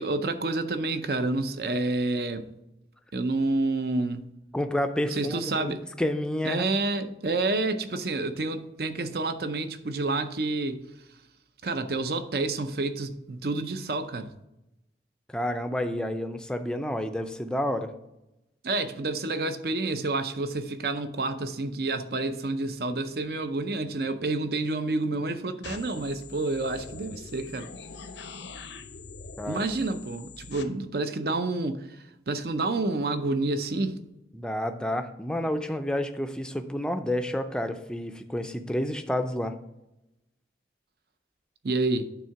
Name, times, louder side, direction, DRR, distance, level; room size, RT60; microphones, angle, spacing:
voice 1, 0.0-2.5 3.1-4.2 5.1-5.8 6.4-10.8 11.6-14.3 18.6-27.7 29.5-34.0 41.6-42.1, right 2 dB, 55° right, 0.6 m, -29 dB
voice 2, 4.5-6.7 15.3-17.9 29.4-29.7 34.3-39.5, left 1 dB, 5° left, 0.4 m, -30 dB
sound 1, 25.6-30.6, left 4 dB, 85° left, 0.7 m, -43 dB
9.2 x 3.6 x 5.7 m
head